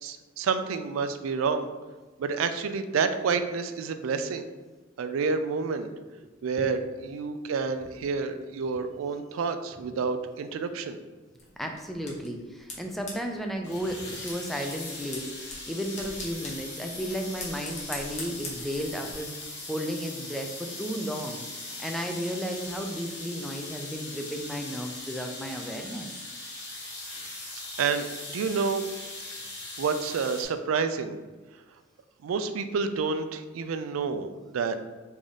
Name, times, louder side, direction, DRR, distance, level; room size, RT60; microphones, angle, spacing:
voice 1, 0.0-1.7 2.2-4.4 5.0-5.9 6.4-11.0 27.8-28.1 28.3-28.9 29.8-31.2 32.2-34.9, right 5 dB, 90° right, 9 dB, 0.3 m, -29 dB
sound 1, 11.4-19.1, left 2 dB, 35° left, 0.9 m, -44 dB
voice 2, 11.6-26.1, equal, ahead, 3 dB, 0.3 m, -34 dB
sound 2, 13.6-30.4, left 2 dB, 60° left, 1.0 m, -40 dB
3.4 x 2.6 x 3.6 m, 1.3 s
head